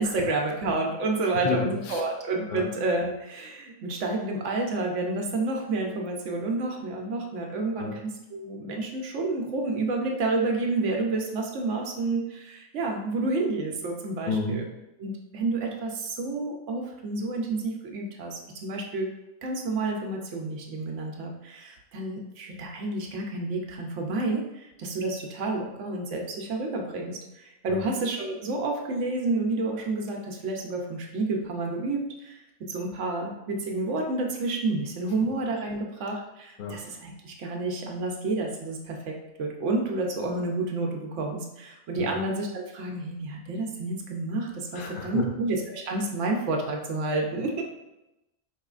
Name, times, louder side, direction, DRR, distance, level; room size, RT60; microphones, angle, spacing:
voice 1, 0.0-14.6 15.0-19.1 19.4-47.6, right 2 dB, 65° right, 1 dB, 0.9 m, -30 dB
voice 2, 1.4-2.0 2.5-2.6 7.8-7.9 14.3-14.6 27.7-27.8 36.6-36.8 42.0-42.2 44.7-45.4, left 4 dB, 60° left, 1 dB, 0.5 m, -31 dB
4.8 x 3.0 x 2.4 m, 0.93 s
omnidirectional pair, 1.4 m